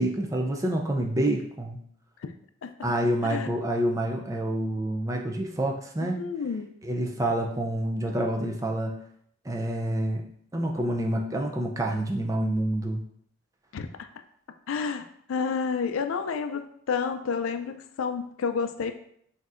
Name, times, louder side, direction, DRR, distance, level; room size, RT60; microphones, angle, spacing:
voice 1, 0.0-1.8 2.8-6.2 6.8-9.0 9.5-10.2 10.5-13.0, right 1 dB, 15° right, 1 dB, 0.4 m, -27 dB
voice 2, 6.0-6.7 13.7-14.1 14.7-18.9, left 5 dB, 75° left, 8 dB, 0.4 m, -30 dB
6.1 x 2.7 x 2.5 m, 0.67 s
head